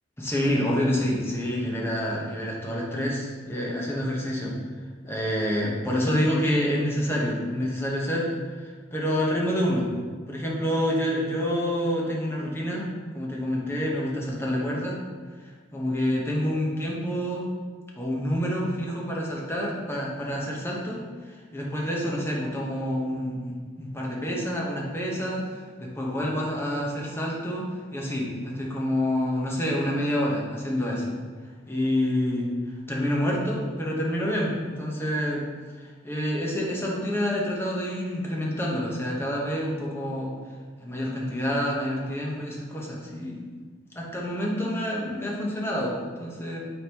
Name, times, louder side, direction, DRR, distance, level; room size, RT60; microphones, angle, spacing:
voice 1, 0.2-4.6 5.0-8.3 8.6-9.9 10.3-12.8 13.1-15.0 15.7-17.5 17.9-31.1 31.7-32.5 32.9-35.5 35.8-40.3 40.8-43.4 43.9-46.6, equal, 15° left, -3 dB, 1.1 m, -28 dB
8.4 x 4.1 x 3.0 m, 1.5 s
head